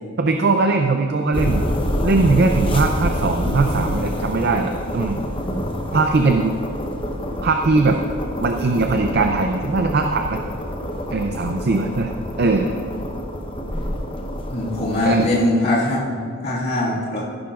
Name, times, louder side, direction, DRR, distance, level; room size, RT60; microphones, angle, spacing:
voice 1, 0.2-1.6 2.0-5.2 5.9-6.5 7.4-8.0 8.4-10.4 11.1-12.7 15.1-15.3, right 3 dB, 50° right, 4 dB, 0.5 m, -20 dB
sound 1, 1.3-15.5, equal, 25° left, 0.9 m, -27 dB
voice 2, 14.5-17.2, left 1 dB, 50° left, -6 dB, 2.0 m, -22 dB
15.0 x 11.5 x 2.5 m, 2.1 s
head